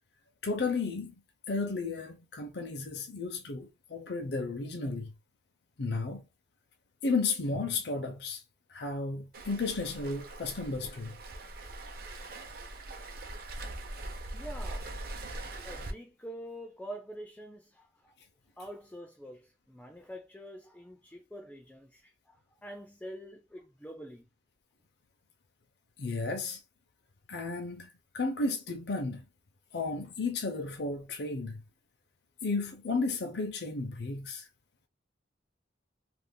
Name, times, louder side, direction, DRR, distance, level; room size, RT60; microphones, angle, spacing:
voice 1, 0.4-1.1 1.5-5.1 5.8-6.2 7.0-8.4 8.7-11.2 26.0-26.6 27.3-29.2 29.7-31.6 32.4-34.4, left 3 dB, 60° left, 0.6 m, -33 dB
Waves surf, 9.3-15.9, right 2 dB, 55° right, 0.7 m, -42 dB
voice 2, 14.3-14.9 15.6-18.1 18.6-24.3, equal, 5° left, 0.3 m, -46 dB
2.5 x 2.4 x 3.6 m
head